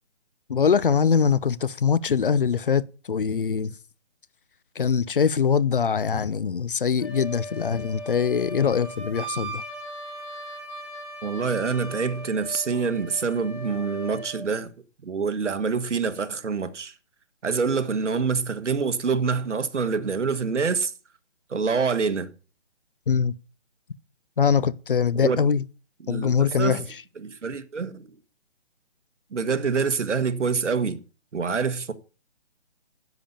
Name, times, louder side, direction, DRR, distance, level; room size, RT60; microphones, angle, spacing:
voice 1, 0.5-2.8 3.1-3.7 4.8-9.6 23.1-23.3 24.4-25.6 26.1-26.9, left 6 dB, 50° left, 0.6 m, -22 dB
Wind instrument woodwind instrument, 7.0-14.4, right 1 dB, 25° left, 4.0 m, -38 dB
voice 2, 11.2-14.7 15.0-16.9 17.4-20.9 21.5-22.3 25.1-25.4 26.0-26.8 27.2-28.1 29.3-31.0 31.3-31.9, right 5 dB, 80° right, 1.6 m, -26 dB
10.5 x 7.0 x 7.2 m
hypercardioid pair, 170°, 35 cm